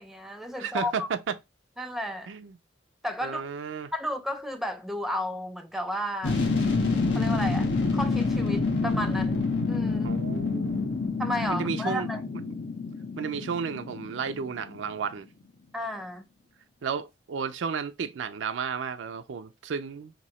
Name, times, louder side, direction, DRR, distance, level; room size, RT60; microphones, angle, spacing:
voice 1, 0.0-1.1 1.8-2.3 3.0-3.4 3.9-6.4 7.1-7.7 7.9-10.1 11.2-12.4 15.7-16.2, equal, ahead, 0.5 m, -33 dB
voice 2, 0.6-1.3 2.3-2.6 3.2-3.9 10.0-11.0 11.5-12.1 13.2-15.3 16.8-20.1, right 6 dB, 90° right, 0.4 m, -33 dB
sound 1, 6.2-14.8 15.1-15.2, left 3 dB, 85° left, 0.7 m, -27 dB
3.0 x 2.7 x 4.2 m
head